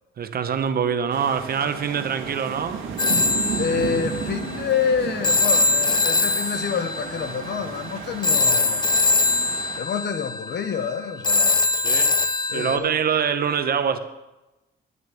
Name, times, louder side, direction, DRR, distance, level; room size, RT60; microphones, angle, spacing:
voice 1, 0.2-2.9 11.8-12.2 12.5-14.0, right 7 dB, 50° right, 0.9 m, -24 dB
sound 1, 1.1-9.8, right 6 dB, 85° right, 1.5 m, -34 dB
Telephone, 3.0-12.8, left 3 dB, 25° left, 0.6 m, -23 dB
voice 2, 3.6-8.9 9.8-11.7 12.5-12.9, left 6 dB, 60° left, 1.0 m, -27 dB
11.0 x 6.5 x 7.1 m
cardioid pair, 90°, 20 cm